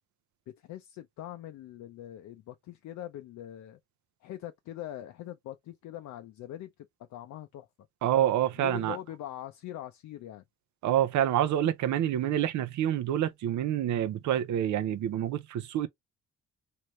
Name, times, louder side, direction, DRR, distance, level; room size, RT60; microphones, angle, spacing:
voice 1, 0.6-3.8 4.2-6.7 7.1-7.7 8.6-10.4, left 12 dB, 70° left, 0.5 m, -42 dB
voice 2, 8.0-9.0 10.8-15.9, right 11 dB, 70° right, 0.6 m, -27 dB
3.1 x 2.7 x 3.1 m
cardioid pair, 90°, 30 cm